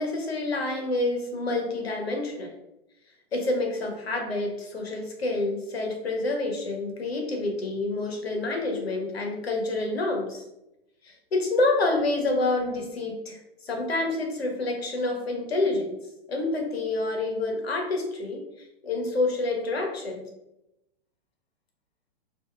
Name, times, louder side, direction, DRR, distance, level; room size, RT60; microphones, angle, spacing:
voice 1, 0.0-2.5 3.3-10.4 11.0-13.4 13.6-16.0 16.3-18.4 18.8-20.3, left 2 dB, 80° left, 2 dB, 1.3 m, -28 dB
5.3 x 2.9 x 3.5 m, 0.88 s
hypercardioid pair, 115°, 30 cm